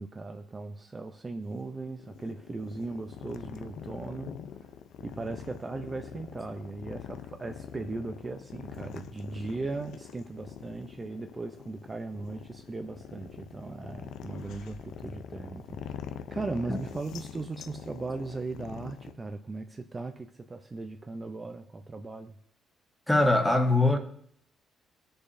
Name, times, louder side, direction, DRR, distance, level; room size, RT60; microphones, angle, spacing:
voice 1, 0.0-4.4 5.0-15.8 16.3-22.3, right 3 dB, 30° right, 6 dB, 0.6 m, -38 dB
sound 1, 1.4-19.1, left 8 dB, 80° left, 0.6 m, -44 dB
voice 2, 23.1-24.0, left 2 dB, 5° left, 4 dB, 1.4 m, -22 dB
18.5 x 6.8 x 2.7 m, 0.65 s
cardioid pair, 90°, 0 cm